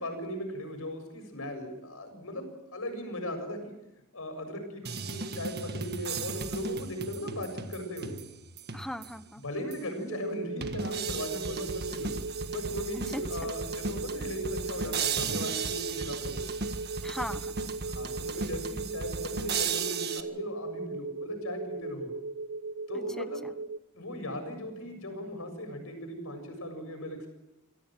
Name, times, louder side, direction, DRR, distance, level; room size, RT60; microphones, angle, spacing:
voice 1, 0.0-3.7 4.1-8.2 9.4-12.1 12.5-16.4 17.9-22.1 22.9-23.5 23.9-27.3, equal, 70° left, 6 dB, 7.3 m, -38 dB
sound 1, 4.8-9.3 9.7-9.8 10.6-20.2, right 5 dB, 50° right, 1.6 m, -36 dB
voice 2, 8.7-9.4 13.1-13.5 17.0-17.6 18.4-18.5 22.9-23.5, equal, ahead, 10 dB, 1.0 m, -39 dB
sound 2, 10.1-23.8, right 3 dB, 80° right, 0.8 m, -38 dB
25.5 x 17.0 x 7.6 m, 0.92 s
head